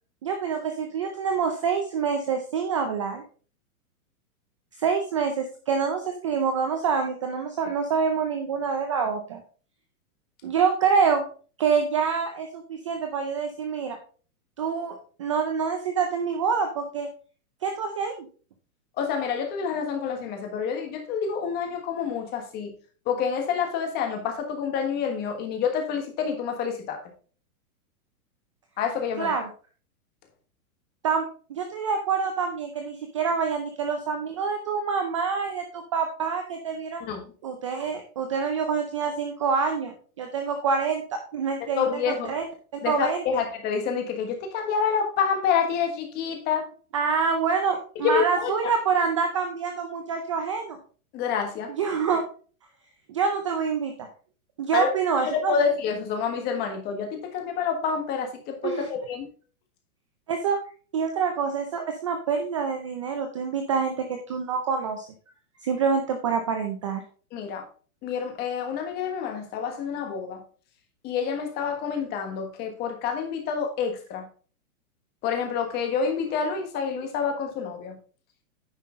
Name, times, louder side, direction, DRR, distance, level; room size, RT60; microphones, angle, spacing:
voice 1, 0.2-3.2 4.8-9.4 10.4-11.2 11.6-14.0 14.6-17.1 17.6-18.3 29.2-29.5 31.0-37.1 37.4-42.5 42.9-43.4 46.9-50.8 51.7-52.3 53.1-54.1 54.6-55.7 58.6-58.9 60.3-60.6 60.9-65.1 65.6-67.0, right 6 dB, 20° right, 0.4 m, -26 dB
voice 2, 19.0-22.7 23.1-27.0 28.8-29.3 37.0-37.2 41.8-42.3 42.8-46.7 47.9-48.7 51.1-51.7 54.7-54.9 55.2-59.3 67.3-67.6 68.0-70.4 71.0-74.3 75.2-78.0, left 6 dB, 20° left, 1.4 m, -28 dB
9.6 x 5.6 x 3.7 m
hypercardioid pair, 160°, 44 cm